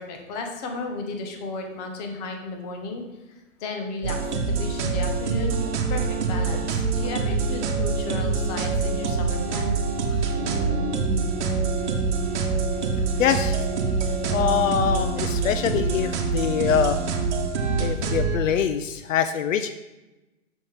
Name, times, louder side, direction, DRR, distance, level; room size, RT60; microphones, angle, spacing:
voice 1, 0.0-5.6 5.9-9.8, left 3 dB, 30° left, 3 dB, 0.9 m, -34 dB
sound 1, 4.0-18.4, right 4 dB, 60° right, 1.1 m, -25 dB
sound 2, 10.3-13.1, left 1 dB, 15° right, 1.6 m, -36 dB
voice 2, 13.2-13.6 14.3-17.0 17.8-19.7, left 8 dB, 80° left, 10 dB, 0.5 m, -24 dB
6.2 x 5.5 x 3.4 m, 1.1 s
hypercardioid pair, 145°, 39 cm